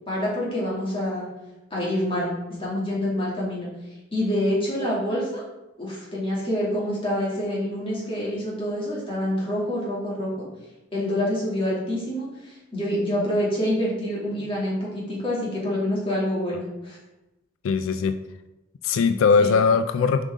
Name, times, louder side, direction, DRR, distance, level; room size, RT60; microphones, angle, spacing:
voice 1, 0.1-1.3 1.7-2.3 2.6-3.7 4.1-5.4 5.8-10.4 10.9-17.0 19.4-19.5, left 1 dB, 25° left, -6 dB, 2.5 m, -26 dB
voice 2, 17.6-18.2 18.8-20.2, left 5 dB, 85° left, 10 dB, 0.3 m, -20 dB
7.5 x 5.4 x 3.6 m, 1.0 s
head